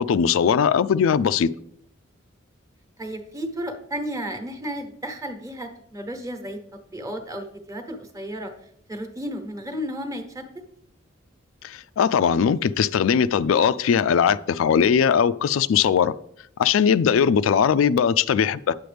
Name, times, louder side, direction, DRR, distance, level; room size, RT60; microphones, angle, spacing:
voice 1, 0.0-1.5 11.6-16.1 16.6-18.7, left 7 dB, 85° left, 0.3 m, -20 dB
voice 2, 3.0-6.6 6.9-8.5 8.9-10.4, equal, 15° right, 1.1 m, -33 dB
9.4 x 7.8 x 3.4 m
head